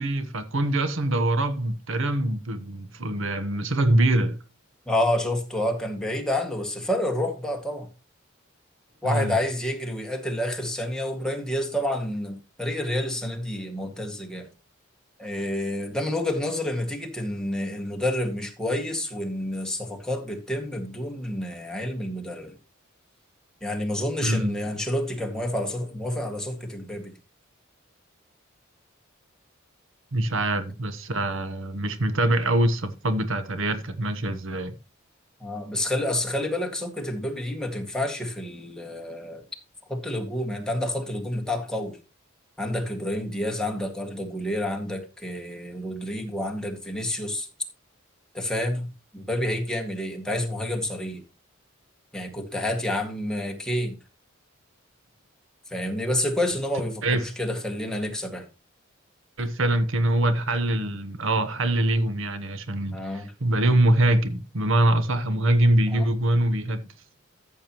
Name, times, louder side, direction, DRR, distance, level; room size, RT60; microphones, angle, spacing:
voice 1, 0.0-4.4 9.0-9.4 24.2-24.6 30.1-34.7 57.0-57.2 59.4-66.9, right 1 dB, 65° right, 1.0 m, -24 dB
voice 2, 4.9-7.9 9.0-14.5 15.2-22.6 23.6-27.1 35.4-39.4 39.9-42.0 42.6-47.5 48.3-48.9 49.1-51.2 52.1-54.0 55.7-58.4 62.9-63.3 65.9-66.1, left 1 dB, 5° left, 2.0 m, -29 dB
14.0 x 7.2 x 3.0 m
head